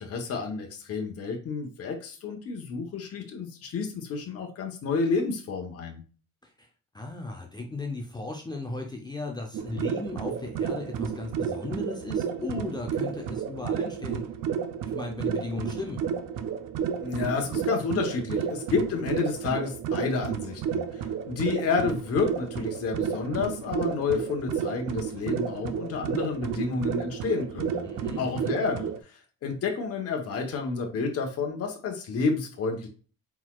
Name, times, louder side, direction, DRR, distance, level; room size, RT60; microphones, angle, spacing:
voice 1, 0.0-6.0 17.0-27.8 28.2-32.9, left 4 dB, 50° left, 2 dB, 1.0 m, -30 dB
voice 2, 6.9-14.3 14.9-16.0 27.8-28.6, left 2 dB, 15° left, 2 dB, 0.6 m, -36 dB
sound 1, 9.5-29.0, right 7 dB, 85° right, 0.6 m, -31 dB
4.6 x 4.0 x 2.3 m, 0.37 s
cardioid pair, 150°, 32 cm